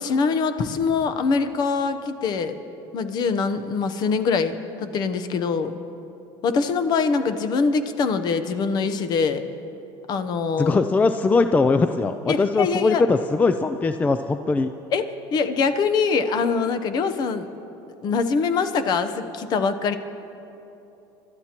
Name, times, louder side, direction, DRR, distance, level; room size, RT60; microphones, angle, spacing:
voice 1, 0.0-2.6 2.9-5.7 6.4-9.4 10.1-10.8 12.3-13.0 14.9-17.5 18.0-20.0, left 5 dB, 45° left, 10 dB, 0.8 m, -23 dB
voice 2, 10.6-14.7, left 3 dB, 15° left, 9 dB, 0.3 m, -20 dB
27.0 x 12.5 x 3.0 m, 2.9 s
cardioid pair, 130°, 9 cm